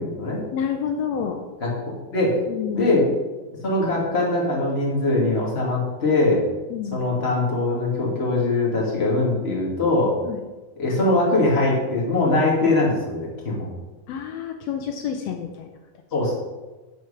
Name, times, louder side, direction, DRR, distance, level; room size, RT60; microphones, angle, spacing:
voice 1, 0.0-0.4 1.6-1.7 2.1-2.4 2.7-3.0 3.6-6.4 6.9-10.1 10.8-13.7 16.1-16.3, left 2 dB, 20° left, -3 dB, 2.2 m, -21 dB
voice 2, 0.5-1.4 2.5-2.9 6.7-7.0 10.2-10.4 14.1-15.7, left 8 dB, 85° left, 4 dB, 1.5 m, -28 dB
13.5 x 4.6 x 5.7 m, 1.2 s
omnidirectional pair, 3.8 m